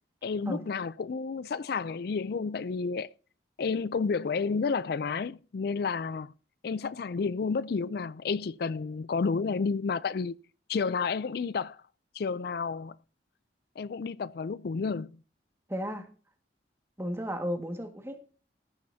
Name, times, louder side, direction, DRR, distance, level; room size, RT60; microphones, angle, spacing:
voice 1, 0.2-3.1 3.6-6.3 6.6-10.4 10.7-11.8 12.1-13.0 13.8-15.2, left 5 dB, 60° left, 0.4 m, -31 dB
voice 2, 15.7-16.1 17.0-18.2, equal, 15° right, 1.7 m, -34 dB
15.0 x 10.5 x 2.7 m
head